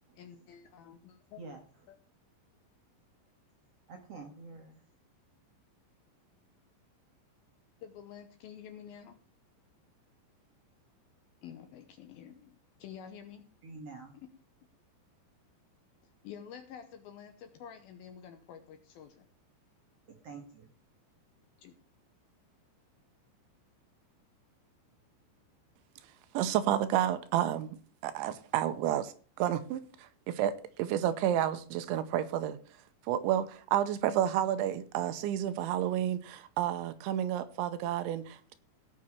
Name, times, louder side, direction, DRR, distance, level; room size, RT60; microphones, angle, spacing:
voice 1, 0.2-1.4 1.9-2.0 7.8-9.2 11.4-13.5 14.1-14.3 16.2-19.3 21.6-21.7, left 8 dB, 75° left, 2.3 m, -49 dB
voice 2, 3.9-4.8 13.6-14.1 20.1-20.7, right 3 dB, 60° right, 1.6 m, -47 dB
voice 3, 26.3-27.8 28.0-32.6 33.1-38.5, right 11 dB, 90° right, 3.2 m, -30 dB
17.0 x 6.1 x 4.5 m
omnidirectional pair, 5.2 m